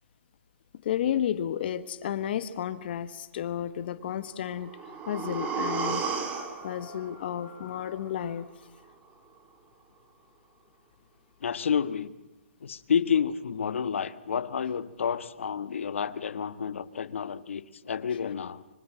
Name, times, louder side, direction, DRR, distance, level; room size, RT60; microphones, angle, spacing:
voice 1, 0.8-8.5, left 10 dB, 50° left, 13 dB, 1.2 m, -32 dB
sound 1, 4.4-8.4 8.7-8.8, right 5 dB, 20° right, 3.2 m, -34 dB
voice 2, 11.4-12.1 12.6-18.6, left 7 dB, 70° left, 14 dB, 1.4 m, -30 dB
25.5 x 25.0 x 7.5 m, 1.0 s
hypercardioid pair, 145°, 7 cm